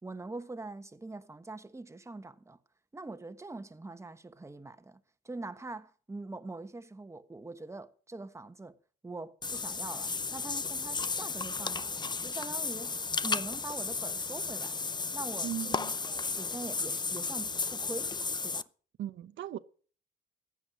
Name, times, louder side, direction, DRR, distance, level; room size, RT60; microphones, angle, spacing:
voice 1, 0.0-2.6 2.9-8.8 9.0-13.0 13.2-14.8 15.1-15.8 16.1-18.2 18.4-18.7, right 2 dB, 15° right, 1.3 m, -43 dB
Water / Bathtub (filling or washing), 9.4-18.6, left 4 dB, 20° left, 0.6 m, -34 dB
voice 2, 15.4-15.9 19.0-19.6, right 11 dB, 70° right, 0.9 m, -37 dB
15.5 x 9.9 x 6.3 m
cardioid pair, 90°, 20 cm